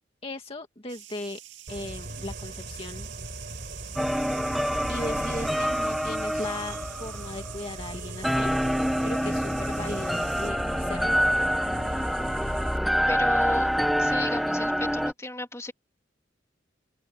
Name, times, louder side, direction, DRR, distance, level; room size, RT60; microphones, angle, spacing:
voice 1, 0.2-1.4 1.7-3.1 4.9-11.2, left 2 dB, 30° left, 2.0 m, -38 dB
sound 1, 0.9-10.5, right 12 dB, 85° right, 2.1 m, -46 dB
sound 2, 1.7-12.8, right 1 dB, 55° right, 6.6 m, -39 dB
sound 3, 4.0-7.9 8.2-15.1, equal, ahead, 0.6 m, -26 dB
voice 2, 13.1-13.7 14.0-15.7, left 2 dB, 15° left, 2.8 m, -34 dB
open air
head